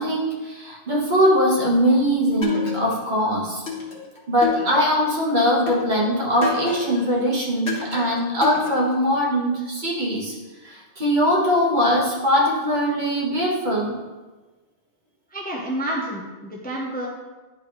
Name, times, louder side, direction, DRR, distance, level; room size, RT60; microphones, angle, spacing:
voice 1, 0.0-3.6 4.3-10.3 10.6-14.0, equal, 45° right, -4 dB, 1.6 m, -21 dB
sound 1, 2.4-3.2 3.7-5.1 5.7-7.1 7.7-9.1, left 5 dB, 85° left, 1.6 m, -30 dB
voice 2, 15.3-17.1, right 1 dB, 10° left, -3 dB, 0.8 m, -29 dB
10.5 x 4.0 x 3.1 m, 1.2 s
omnidirectional pair, 1.1 m